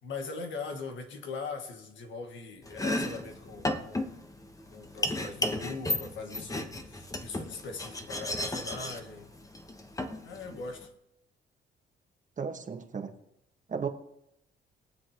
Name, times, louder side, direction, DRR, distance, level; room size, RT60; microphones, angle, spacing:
voice 1, 0.0-4.2 4.7-9.3 10.2-10.9, left 4 dB, 75° left, 5 dB, 1.7 m, -41 dB
Domestic sounds home sounds, 2.6-10.8, left 1 dB, 15° left, 1.1 m, -34 dB
voice 2, 12.4-13.1 13.7-13.9, right 6 dB, 40° right, 5 dB, 1.4 m, -34 dB
22.0 x 7.4 x 3.0 m, 0.81 s
cardioid pair, 90°, 20 cm